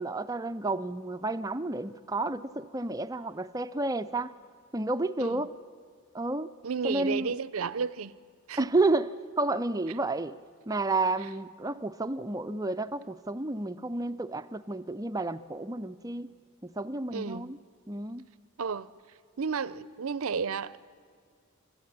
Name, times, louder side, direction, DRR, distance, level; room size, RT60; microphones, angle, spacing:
voice 1, 0.0-4.3 4.7-5.5 6.1-6.5 6.8-7.4 8.6-9.1 9.4-10.4 10.7-16.3 16.6-17.6 17.9-18.2, right 2 dB, 15° right, 0.4 m, -31 dB
voice 2, 6.6-8.2 8.5-8.7 17.1-17.5 18.6-18.9 19.4-20.8, right 5 dB, 75° right, 0.6 m, -32 dB
24.0 x 13.5 x 8.8 m
head